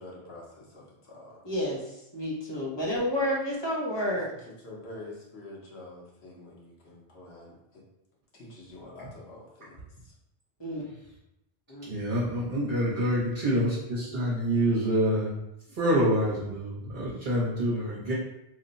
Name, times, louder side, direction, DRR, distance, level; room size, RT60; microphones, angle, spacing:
voice 1, 0.0-1.4 4.6-7.8 8.3-10.1 13.4-13.6, left 2 dB, 70° left, -3 dB, 1.2 m, -47 dB
voice 2, 1.4-1.8 2.1-4.2 10.6-10.8 11.7-11.9, left 1 dB, 25° left, -5 dB, 0.8 m, -29 dB
voice 3, 11.9-15.3 15.7-18.1, equal, 60° right, -8 dB, 1.1 m, -27 dB
3.1 x 2.1 x 3.9 m, 0.86 s
omnidirectional pair, 1.1 m